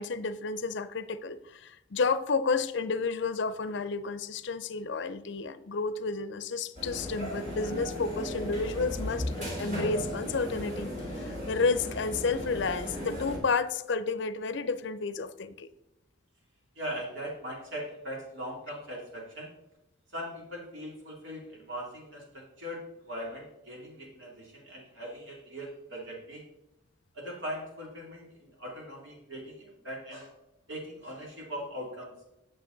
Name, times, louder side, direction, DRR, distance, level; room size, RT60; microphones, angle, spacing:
voice 1, 0.0-15.7, left 4 dB, 60° left, 13 dB, 0.5 m, -31 dB
sound 1, 6.7-13.4, equal, 40° right, 3.0 m, -36 dB
voice 2, 16.7-19.5 20.1-26.4 27.1-30.3 30.7-32.1, equal, 65° right, -2 dB, 2.8 m, -40 dB
9.2 x 6.7 x 3.9 m, 0.89 s
head